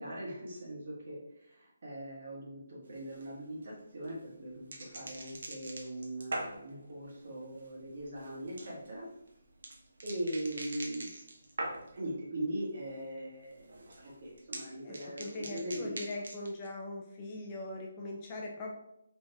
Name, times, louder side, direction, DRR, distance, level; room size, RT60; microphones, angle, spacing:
voice 1, 0.0-9.1 10.0-11.1 11.9-16.0, right 1 dB, 45° right, -4 dB, 1.6 m, -40 dB
sound 1, 2.9-12.1 12.5-13.0 13.3-16.7, right 2 dB, 65° right, 0.9 m, -44 dB
voice 2, 14.8-18.8, left 2 dB, 20° left, -2 dB, 0.6 m, -41 dB
4.1 x 3.4 x 3.4 m, 0.78 s
hypercardioid pair, 170°, 0 cm